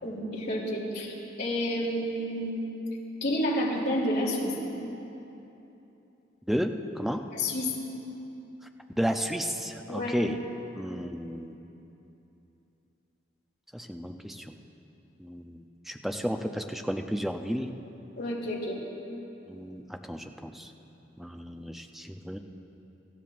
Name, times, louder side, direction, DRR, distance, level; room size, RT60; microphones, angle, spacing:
voice 1, 0.0-2.7 3.2-4.5 7.3-7.7 9.9-10.2 18.2-18.8, left 1 dB, 60° left, -4 dB, 3.1 m, -30 dB
voice 2, 6.5-7.2 9.0-10.4 10.8-11.6 13.7-14.5 15.2-17.7 19.5-20.7 21.2-22.4, equal, ahead, 4 dB, 0.5 m, -32 dB
25.0 x 14.0 x 2.5 m, 3.0 s
head